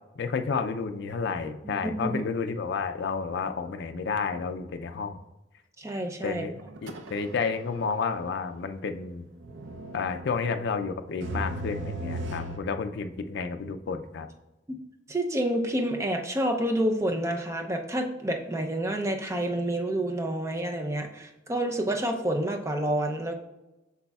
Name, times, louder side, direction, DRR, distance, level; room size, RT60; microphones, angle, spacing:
voice 1, 0.2-5.2 6.2-9.3 9.9-14.3, left 5 dB, 60° left, 7 dB, 0.4 m, -31 dB
voice 2, 1.6-2.2 5.8-6.4 14.7-14.8 15.1-23.3, right 1 dB, 15° right, 4 dB, 0.5 m, -28 dB
sound 1, 6.6-7.5 7.8-7.9 9.4-12.6, right 1 dB, 70° right, 0.6 m, -37 dB
8.1 x 6.0 x 2.3 m, 1.0 s
head